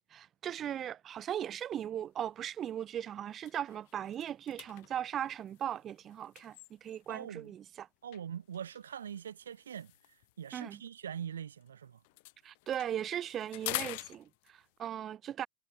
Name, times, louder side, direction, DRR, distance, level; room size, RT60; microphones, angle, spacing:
voice 1, 0.1-7.9 10.5-10.8 12.4-15.5, right 10 dB, 25° right, 2.6 m, -38 dB
sound 1, 2.2-2.4 2.8-3.0 3.3-7.3 8.1-11.7 12.0-14.8, left 25 dB, 50° left, 1.0 m, -46 dB
voice 2, 7.1-7.5 8.0-9.9 10.4-12.0, right 8 dB, 65° right, 4.9 m, -42 dB
figure-of-eight pair, 90°, 0 cm